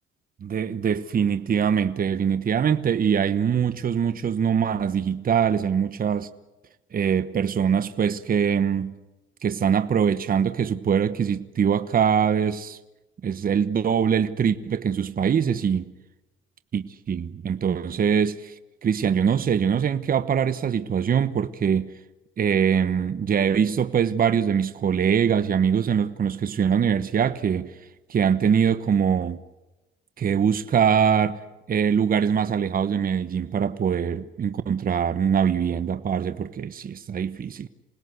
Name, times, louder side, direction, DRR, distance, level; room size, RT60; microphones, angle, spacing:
voice 1, 0.4-6.3 6.9-8.9 9.4-12.8 13.2-15.9 16.7-18.5 18.8-21.9 22.4-27.7 28.1-29.4 30.2-31.4 31.7-37.7, right 7 dB, 45° right, 1.1 m, -23 dB
27.5 x 20.0 x 8.1 m
cardioid pair, 90°, 20 cm